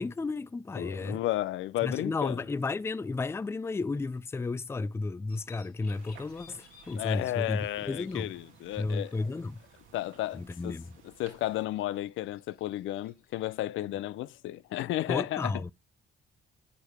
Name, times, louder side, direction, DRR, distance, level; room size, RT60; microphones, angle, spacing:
voice 1, 0.0-1.2 1.8-8.3 8.8-9.6 10.3-11.0 15.1-15.7, left 3 dB, 15° left, 0.4 m, -33 dB
voice 2, 0.8-2.4 6.9-9.2 9.9-10.8 11.2-15.5, left 15 dB, 80° left, 0.5 m, -33 dB
sound 1, 5.3-13.8, left 6 dB, 50° left, 3.9 m, -61 dB
sound 2, 5.9-11.7, right 7 dB, 85° right, 1.7 m, -58 dB
10.5 x 4.9 x 3.4 m
cardioid pair, 90°, 20 cm